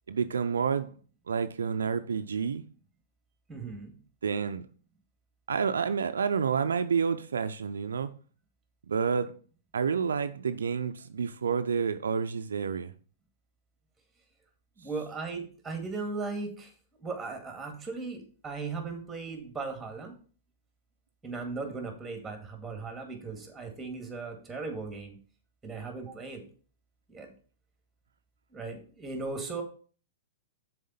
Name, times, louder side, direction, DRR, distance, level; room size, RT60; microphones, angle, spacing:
voice 1, 0.1-0.9 1.3-2.6 4.2-4.7 5.5-8.1 8.9-9.3 9.7-12.9, right 6 dB, 85° right, 0.5 m, -29 dB
voice 2, 3.5-3.9 14.8-16.7 17.0-20.1 21.2-25.2 25.6-26.4 27.1-27.3 28.5-29.6, right 4 dB, 10° right, 2.1 m, -37 dB
6.4 x 4.3 x 5.6 m
hypercardioid pair, 120°, 0 cm